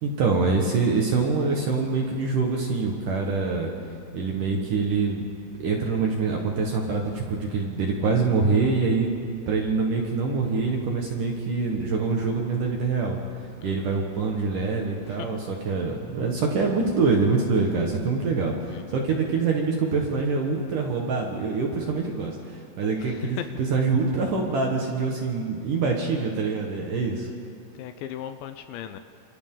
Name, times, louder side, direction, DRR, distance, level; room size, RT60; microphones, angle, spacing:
voice 1, 0.0-3.7 4.1-5.3 5.6-9.1 9.5-13.2 13.6-27.3, right 4 dB, 60° right, 0 dB, 2.4 m, -25 dB
sound 1, 1.0-17.9, left 1 dB, 85° right, 7.0 m, -54 dB
voice 2, 13.6-14.0 15.1-15.3 18.7-19.1 23.0-23.5 27.8-29.0, left 11 dB, 80° left, 8 dB, 2.8 m, -37 dB
28.5 x 27.0 x 3.9 m, 2.4 s
omnidirectional pair, 5.5 m